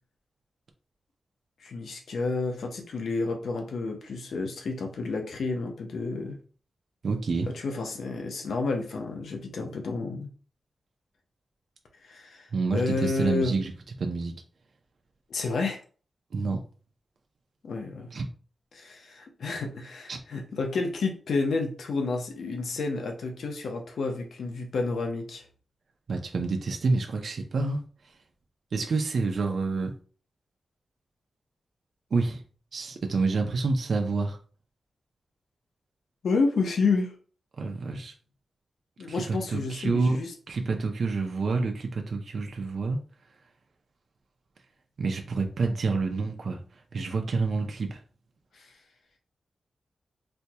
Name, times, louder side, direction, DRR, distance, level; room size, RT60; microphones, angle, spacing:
voice 1, 1.6-6.4 7.5-10.3 12.0-13.6 15.3-15.8 17.6-18.1 18.7-25.5 36.2-37.1 39.0-40.3 48.5-48.7, left 3 dB, 90° left, 2 dB, 0.7 m, -30 dB
voice 2, 7.0-7.5 12.5-13.7 14.0-14.4 16.3-16.6 18.1-18.3 20.1-20.2 26.1-27.8 28.7-29.9 32.1-32.4 32.7-34.4 37.6-38.1 39.1-40.2 40.5-43.0 45.0-46.6 46.9-48.0, right 3 dB, 65° right, 3 dB, 0.5 m, -28 dB
4.3 x 2.2 x 2.8 m, 0.40 s
wide cardioid pair, 105°, 0 cm